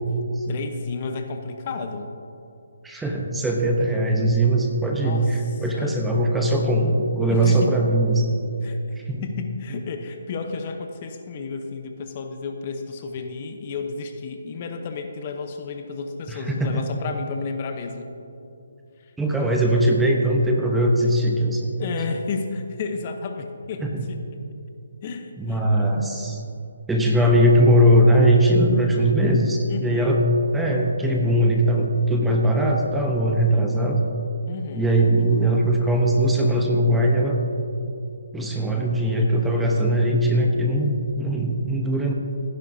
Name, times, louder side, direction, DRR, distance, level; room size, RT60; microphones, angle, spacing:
voice 1, 0.5-2.1 5.0-6.0 7.3-7.7 8.6-18.1 19.0-19.1 21.8-24.2 25.0-26.2 29.7-30.2 34.5-34.9, left 4 dB, 35° left, 5 dB, 0.8 m, -32 dB
voice 2, 2.8-8.3 9.1-9.2 16.3-16.8 19.2-21.9 23.8-24.0 25.4-26.4 26.9-30.2 30.5-34.0 34.7-37.4 38.3-42.1, right 1 dB, 5° right, 0 dB, 0.8 m, -20 dB
16.0 x 10.5 x 2.7 m, 2.7 s
hypercardioid pair, 160°, 0 cm